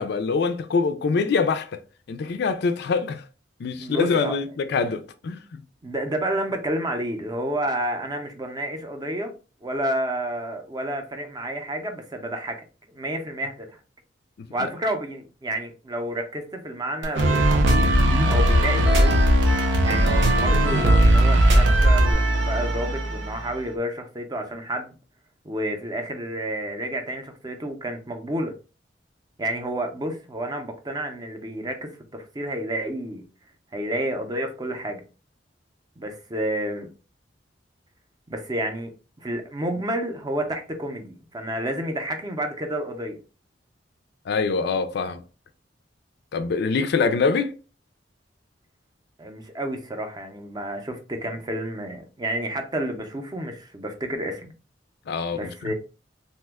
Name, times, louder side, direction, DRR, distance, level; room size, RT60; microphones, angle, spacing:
voice 1, 0.0-1.8 2.1-3.2 3.6-5.6 44.3-45.2 46.3-47.5 55.1-55.7, left 4 dB, 60° left, 0.4 m, -24 dB
voice 2, 3.8-4.3 5.8-9.3 9.6-12.7 12.9-13.8 14.5-19.2 19.8-24.9 25.4-28.5 29.4-33.2 33.7-35.0 36.0-36.9 38.3-38.9 39.2-43.2 49.2-54.5 55.3-55.7, right 1 dB, 20° right, 0.5 m, -30 dB
sound 1, 17.0-22.1, equal, 65° right, 0.9 m, -20 dB
sound 2, 17.2-23.6, right 1 dB, 90° right, 0.5 m, -21 dB
2.9 x 2.2 x 3.4 m
head